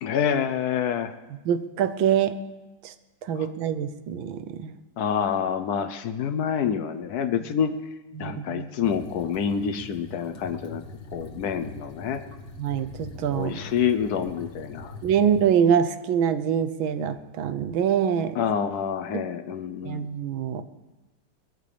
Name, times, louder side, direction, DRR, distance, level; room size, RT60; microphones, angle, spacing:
voice 1, 0.0-1.1 3.4-3.5 5.0-7.7 8.2-10.8 11.1-12.2 13.3-15.0 18.3-20.1, left 7 dB, 65° left, 10 dB, 1.0 m, -27 dB
voice 2, 1.4-2.3 2.8-2.9 3.3-4.8 8.2-8.7 12.6-13.5 15.0-18.4 19.8-20.6, right 8 dB, 80° right, 11 dB, 1.6 m, -24 dB
sound 1, 8.8-15.5, left 2 dB, 35° left, 1.4 m, -42 dB
21.5 x 14.0 x 3.4 m, 1.1 s
omnidirectional pair, 2.2 m